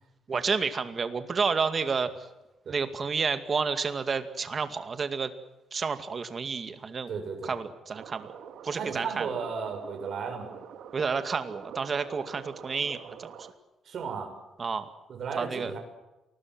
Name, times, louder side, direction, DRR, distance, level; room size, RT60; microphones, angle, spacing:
voice 1, 0.3-2.1 2.7-5.3 5.7-7.1 7.4-8.3 8.6-9.3 10.9-13.3 14.6-14.9 15.4-15.7, right 5 dB, 35° right, 9 dB, 2.3 m, -30 dB
voice 2, 7.1-7.5 8.7-10.5 13.9-14.3 15.1-15.8, right 5 dB, 50° right, 5 dB, 7.0 m, -34 dB
sound 1, 7.9-13.5, right 8 dB, 70° right, 2.4 m, -45 dB
28.0 x 20.5 x 7.9 m, 0.98 s
cardioid pair, 130°, 0 cm